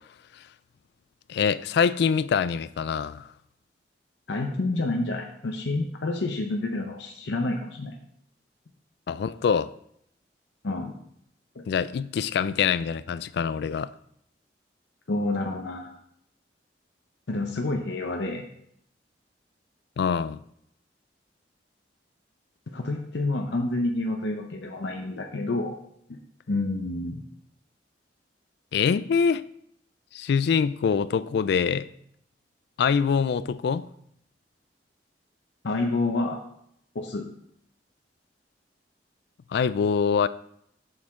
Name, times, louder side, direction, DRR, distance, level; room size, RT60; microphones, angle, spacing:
voice 1, 1.3-3.2 9.1-9.7 11.7-13.9 20.0-20.4 28.7-29.4 30.1-31.9 32.8-33.9 39.5-40.3, left 6 dB, 65° left, 16 dB, 0.3 m, -24 dB
voice 2, 4.3-7.9 10.6-10.9 11.6-11.7 15.1-16.0 17.3-18.4 22.7-25.7 26.1-26.2 26.5-27.2 35.6-36.4 36.9-37.3, left 2 dB, 90° left, 2 dB, 0.7 m, -28 dB
7.3 x 6.5 x 3.6 m, 0.72 s
head